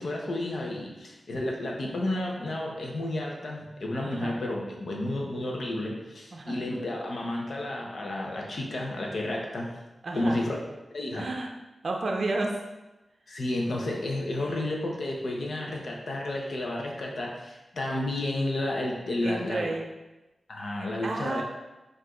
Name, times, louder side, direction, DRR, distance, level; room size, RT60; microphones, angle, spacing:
voice 1, 0.0-9.7 10.1-10.6 10.9-11.3 13.3-19.7 20.5-21.4, left 1 dB, 70° left, -1 dB, 0.8 m, -31 dB
voice 2, 4.1-4.4 6.3-6.6 10.0-10.4 11.2-11.5 11.8-12.6 19.2-19.9 20.8-21.4, right 2 dB, 55° right, 2 dB, 0.5 m, -31 dB
4.7 x 2.6 x 3.7 m, 1.0 s
wide cardioid pair, 125°, 0 cm